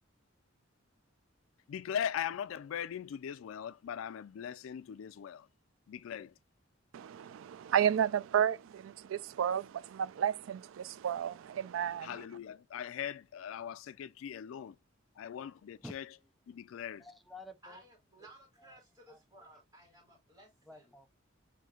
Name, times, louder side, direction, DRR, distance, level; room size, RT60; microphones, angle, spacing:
voice 1, 1.7-5.5 5.9-6.3 12.0-14.7 15.2-16.1 16.6-17.0, left 9 dB, 85° left, 0.3 m, -40 dB
voice 2, 6.9-12.1, right 9 dB, 80° right, 0.3 m, -32 dB
voice 3, 17.0-17.8 19.1-19.2 20.7-21.2, left 1 dB, ahead, 0.4 m, -50 dB
voice 4, 17.6-20.9, right 1 dB, 15° right, 1.6 m, -57 dB
5.7 x 2.7 x 2.3 m
head